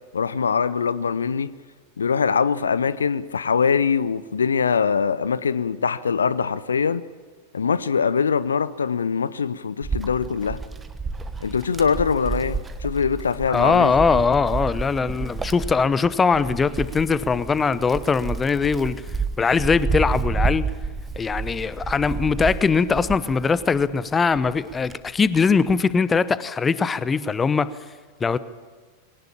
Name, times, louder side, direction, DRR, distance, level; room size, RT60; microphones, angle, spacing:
voice 1, 0.1-1.5 2.0-7.0 7.5-10.6 11.4-14.2, left 6 dB, 70° left, 0.6 m, -23 dB
Wind, 9.8-23.9 24.4-25.9, right 4 dB, 15° right, 1.3 m, -30 dB
voice 2, 13.5-19.0 19.4-20.7 21.2-27.7 28.2-28.4, left 5 dB, 15° left, 0.8 m, -21 dB
21.5 x 18.5 x 8.8 m
figure-of-eight pair, 90°, 0 cm